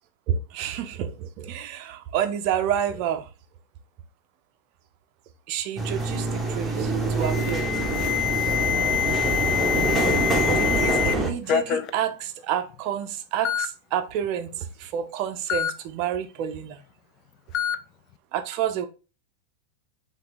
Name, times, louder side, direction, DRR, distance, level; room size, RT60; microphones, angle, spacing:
voice 1, 0.3-3.3 5.5-7.7 10.5-16.8 18.3-18.9, right 9 dB, 40° right, 0.5 m, -29 dB
sound 1, 5.8-11.3, right 2 dB, 10° right, 0.8 m, -25 dB
Alarm, 7.2-11.1 11.5-11.9 12.7-12.8 13.4-13.7 15.5-15.7 17.5-17.8, left 10 dB, 35° left, 0.3 m, -25 dB
5.6 x 2.4 x 3.6 m
figure-of-eight pair, 90°, 0 cm